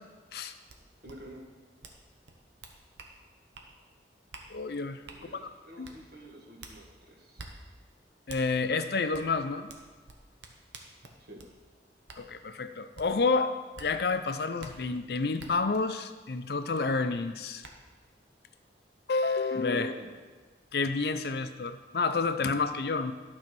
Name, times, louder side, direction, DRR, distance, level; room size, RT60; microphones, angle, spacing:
sound 1, 0.7-0.8 1.1-1.2 1.8-2.0 2.3-3.1 3.5-3.7 4.3-4.5 5.1-5.2 5.8-6.0 6.6-6.8 7.4-7.5 8.3-8.4 9.1-9.3 9.7-11.5 12.1-12.2 13.0-13.1 13.8-13.9 14.6-14.7 15.4-15.5 17.0-17.1 17.6-17.7, right 4 dB, 80° right, 1.0 m, -47 dB
voice 1, 1.0-1.4 5.0-7.4 11.2-11.4 19.7-20.1, right 1 dB, 55° right, 0 dB, 1.5 m, -48 dB
voice 2, 4.5-5.3 5.8-5.9 8.3-9.7 12.2-13.5 13.8-17.6 19.1-19.9 20.7-23.1, left 4 dB, 60° left, 10 dB, 0.5 m, -29 dB
12.0 x 4.2 x 6.1 m, 1.4 s
head